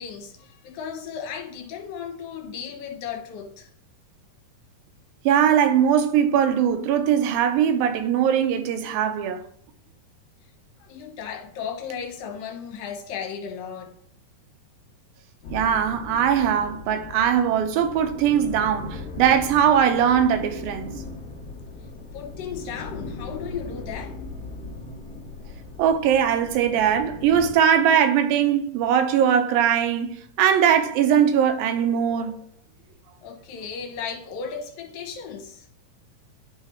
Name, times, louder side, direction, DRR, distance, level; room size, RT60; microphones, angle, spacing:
voice 1, 0.0-3.7 10.8-13.9 22.1-24.2 33.2-35.7, left 7 dB, 75° left, 2.7 m, -35 dB
voice 2, 5.3-9.4 15.5-21.0 25.8-32.4, right 8 dB, 80° right, 2.5 m, -20 dB
sound 1, 15.4-27.5, left 3 dB, 55° left, 1.5 m, -38 dB
10.5 x 4.0 x 4.4 m
omnidirectional pair, 4.2 m